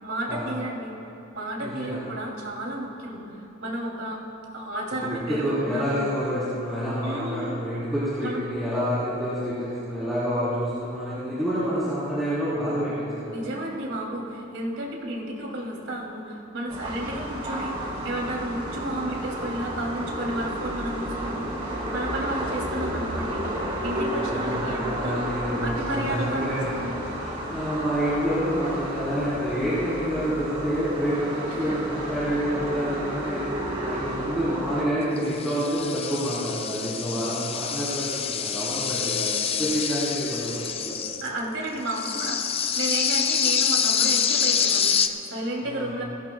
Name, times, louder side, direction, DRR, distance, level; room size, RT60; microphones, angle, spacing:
voice 1, 0.0-0.9 1.3-4.2 4.5-6.0 7.0-7.6 8.2-8.4 13.2-23.5 23.8-26.9 31.6-31.8 41.2-46.0, right 1 dB, 75° right, -2 dB, 2.8 m, -32 dB
voice 2, 1.6-2.0 5.0-13.5 24.0-26.7 27.2-33.4 33.8-39.3 39.6-41.0 45.7-45.9, equal, ahead, -14 dB, 3.7 m, -28 dB
sound 1, 16.7-34.8, right 1 dB, 30° right, 2.3 m, -32 dB
sound 2, 35.2-41.3 41.9-45.1, left 7 dB, 30° left, 0.5 m, -26 dB
21.5 x 16.0 x 2.3 m, 3.0 s
head